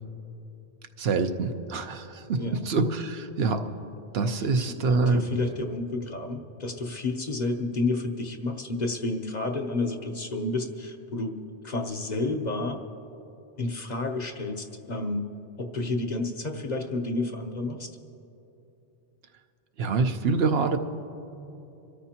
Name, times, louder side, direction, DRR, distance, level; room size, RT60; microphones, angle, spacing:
voice 1, 1.0-3.7 4.1-5.2 19.8-20.8, right 4 dB, 70° right, 7 dB, 1.0 m, -25 dB
voice 2, 4.4-11.4 11.6-12.8 13.6-15.3 15.6-17.9, left 2 dB, 45° left, 4 dB, 0.9 m, -30 dB
26.0 x 13.5 x 2.9 m, 3.0 s
omnidirectional pair, 1.1 m